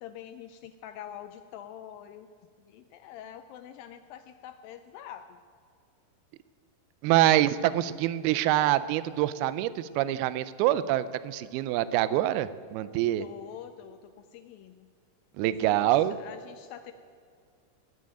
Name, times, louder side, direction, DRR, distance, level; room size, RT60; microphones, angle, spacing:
voice 1, 0.0-2.3 2.6-5.4 13.2-14.9 15.4-16.9, left 10 dB, 85° left, 9 dB, 2.0 m, -45 dB
voice 2, 7.0-13.2 15.4-16.2, right 13 dB, 80° right, 15 dB, 2.4 m, -25 dB
18.5 x 7.6 x 9.0 m, 2.2 s
omnidirectional pair, 4.7 m